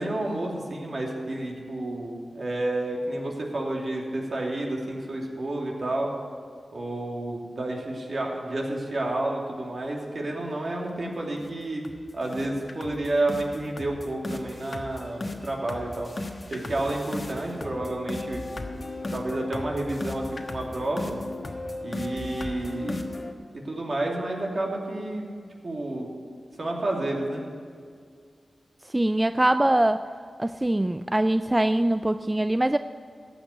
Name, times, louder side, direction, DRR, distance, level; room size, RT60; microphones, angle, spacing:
voice 1, 0.0-6.1 6.7-11.8 12.1-16.1 16.5-18.4 19.1-21.2 21.8-23.0 23.5-25.3 25.6-26.1 26.6-27.4, right 2 dB, 60° right, -1 dB, 2.6 m, -30 dB
sound 1, 10.9-11.0 11.4-11.5 11.8-12.0 12.3-23.3, left 2 dB, 45° left, 1.2 m, -36 dB
voice 2, 28.9-30.1 30.4-32.8, right 1 dB, 20° right, 11 dB, 0.3 m, -23 dB
14.5 x 6.0 x 9.5 m, 2.1 s
cardioid pair, 45°, 0 cm